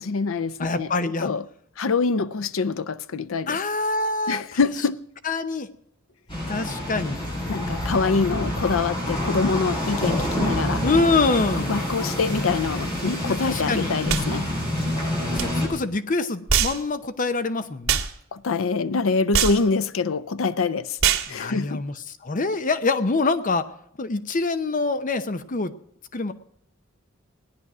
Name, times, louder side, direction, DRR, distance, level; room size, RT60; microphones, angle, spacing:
voice 1, 0.0-0.9 1.2-1.4 1.8-3.6 4.3-5.0 7.5-10.8 11.6-14.5 18.3-21.0 21.3-21.8, left 4 dB, 75° left, 0.6 m, -25 dB
voice 2, 0.6-1.3 3.5-4.6 5.2-5.7 6.5-7.2 10.8-11.7 13.2-13.9 15.3-18.0 21.3-21.9 22.2-23.7 24.0-25.7 26.1-26.3, left 3 dB, 40° left, 0.7 m, -25 dB
sound 1, 6.3-15.7, left 1 dB, 25° left, 7.4 m, -27 dB
sound 2, 14.1-14.3 15.4-15.5 16.5-16.8 17.9-18.1 19.3-19.6 21.0-21.3, right 7 dB, 80° right, 1.8 m, -22 dB
18.0 x 10.5 x 6.1 m
head